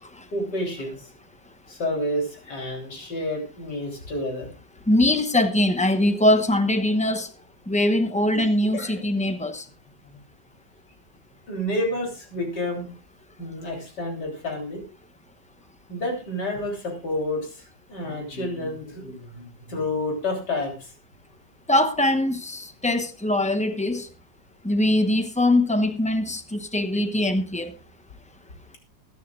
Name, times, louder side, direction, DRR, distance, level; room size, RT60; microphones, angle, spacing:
voice 1, 0.3-1.0 1.7-4.5 8.3-8.4 8.7-9.0 10.0-10.2 11.5-12.9 13.4-14.8 15.9-17.6 17.9-20.9, left 1 dB, 70° left, 3.9 m, -29 dB
voice 2, 4.9-7.3 7.7-9.6 21.7-24.1 24.6-27.7, left 1 dB, 5° left, 0.5 m, -22 dB
21.5 x 9.3 x 2.4 m
omnidirectional pair, 1.9 m